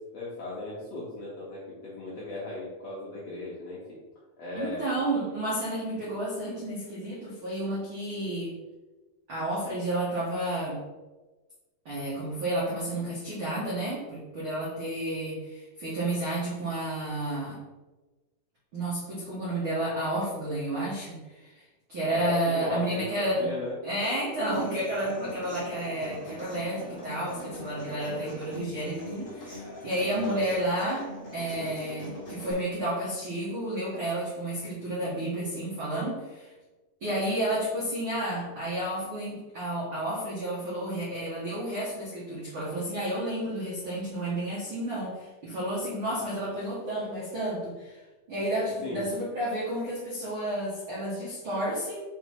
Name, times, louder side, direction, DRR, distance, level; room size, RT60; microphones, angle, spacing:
voice 1, 0.1-4.0 4.4-5.1 22.1-23.8 30.1-30.4 31.5-31.7 48.8-49.0, left 2 dB, 80° left, -7 dB, 1.5 m, -37 dB
voice 2, 4.5-8.6 9.3-10.8 11.8-17.6 18.7-21.6 21.9-23.5 23.8-36.5 37.0-48.0 48.3-52.0, right 1 dB, 85° right, -8 dB, 1.1 m, -31 dB
Human voice / Acoustic guitar, 24.5-32.5, left 1 dB, 35° left, 1.2 m, -42 dB
6.5 x 3.6 x 4.5 m, 1.2 s
omnidirectional pair, 4.9 m